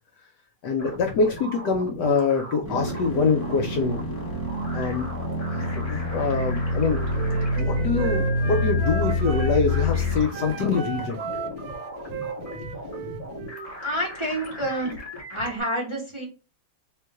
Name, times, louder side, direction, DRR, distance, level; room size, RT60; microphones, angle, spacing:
voice 1, 0.6-4.0 4.7-5.1 5.5-7.0 7.6-11.2, left 4 dB, 70° left, 5 dB, 1.1 m, -25 dB
sound 1, 0.8-15.6, left 1 dB, 25° left, 1.8 m, -38 dB
sound 2, 2.7-10.2, left 2 dB, 5° left, 1.3 m, -26 dB
Wind instrument woodwind instrument, 6.8-9.9 10.3-13.7, right 7 dB, 75° right, 0.8 m, -36 dB
voice 2, 13.8-14.9 15.3-16.3, right 1 dB, 20° right, -2 dB, 1.1 m, -28 dB
3.8 x 3.1 x 3.4 m, 0.33 s
omnidirectional pair, 2.2 m